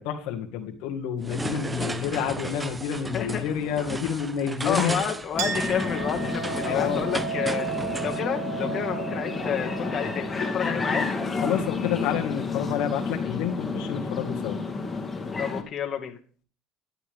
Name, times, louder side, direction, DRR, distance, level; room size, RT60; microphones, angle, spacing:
voice 1, 0.0-5.0 6.6-7.0 11.4-14.6, left 8 dB, 80° left, 3 dB, 1.9 m, -29 dB
sound 1, 1.2-8.2, right 2 dB, 15° right, 0.8 m, -35 dB
voice 2, 3.1-3.4 4.6-7.7 8.0-11.1 15.4-16.2, left 8 dB, 45° left, 2 dB, 2.0 m, -30 dB
sound 2, 5.3-15.6, left 4 dB, 20° left, 2.6 m, -30 dB
Chink clink, 5.4-12.4, right 8 dB, 85° right, 3.0 m, -35 dB
12.0 x 11.0 x 3.6 m, 0.42 s
supercardioid pair, 95°, 0 cm